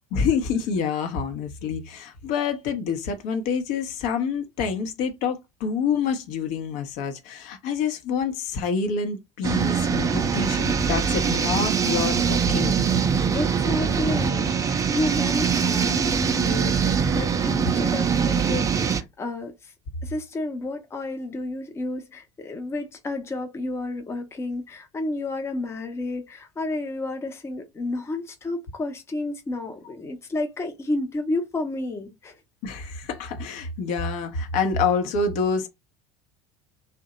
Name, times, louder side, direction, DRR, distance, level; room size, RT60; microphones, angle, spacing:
voice 1, 0.1-12.9 32.6-35.7, left 5 dB, 55° left, 0.7 m, -27 dB
sound 1, 9.4-19.0, right 6 dB, 20° right, 0.4 m, -23 dB
voice 2, 13.2-19.7 20.0-32.3, left 2 dB, 15° left, 0.6 m, -31 dB
2.7 x 2.1 x 4.0 m
figure-of-eight pair, 65°, 15 cm